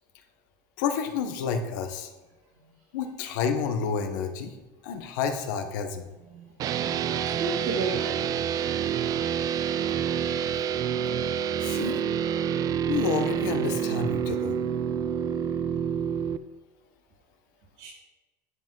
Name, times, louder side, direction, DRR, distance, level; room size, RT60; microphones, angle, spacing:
voice 1, 0.8-2.1 2.9-4.5 4.8-6.1 11.6-12.0 12.9-14.6, left 6 dB, 80° left, 6 dB, 1.2 m, -29 dB
sound 1, 6.6-16.4, right 8 dB, 35° right, 0.4 m, -28 dB
voice 2, 6.7-8.1 17.8-17.9, right 4 dB, 65° right, -6 dB, 2.4 m, -32 dB
10.5 x 7.5 x 3.9 m, 1.1 s
supercardioid pair, 130°, 10 cm